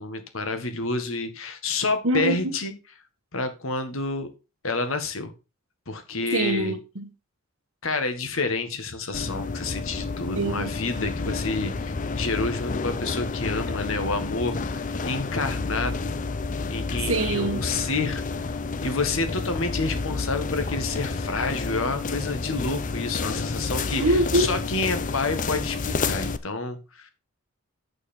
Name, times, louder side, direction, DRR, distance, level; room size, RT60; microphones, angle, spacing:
voice 1, 0.0-2.7 3.3-4.3 4.6-5.3 5.9-6.8 7.8-16.1 16.7-18.2 18.8-27.1, left 3 dB, 70° left, 1.8 m, -29 dB
voice 2, 2.0-2.5 6.3-7.1 10.3-10.7 17.1-17.6 24.0-24.5, right 2 dB, 70° right, 1.6 m, -24 dB
sound 1, 9.1-26.4, left 4 dB, 35° left, 0.6 m, -30 dB
8.7 x 6.9 x 4.4 m
head